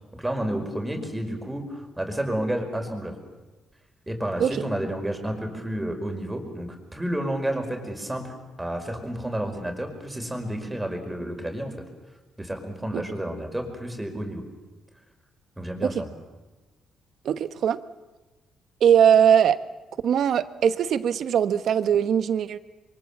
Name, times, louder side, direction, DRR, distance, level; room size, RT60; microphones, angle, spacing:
voice 1, 0.2-3.1 4.1-11.7 12.4-14.4 15.6-16.1, right 1 dB, 10° right, 4 dB, 5.2 m, -30 dB
voice 2, 17.2-17.8 18.8-19.6 20.0-22.6, right 8 dB, 65° right, 12 dB, 1.1 m, -20 dB
27.0 x 23.5 x 7.4 m, 1.2 s
cardioid pair, 90°, 0 cm